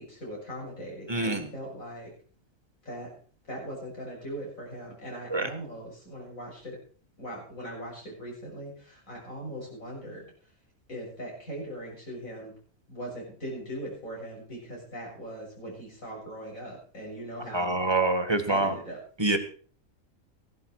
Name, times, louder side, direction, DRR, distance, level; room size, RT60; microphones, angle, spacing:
voice 1, 0.0-2.1 2.9-3.1 3.5-6.8 7.2-10.3 10.9-12.5 12.9-17.8 18.5-19.0, equal, 85° left, -2 dB, 7.4 m, -40 dB
voice 2, 1.1-1.4 5.3-5.5 17.5-18.7 19.2-19.4, right 2 dB, 20° right, 7 dB, 1.5 m, -25 dB
16.0 x 11.5 x 4.7 m, 0.43 s
omnidirectional pair, 1.4 m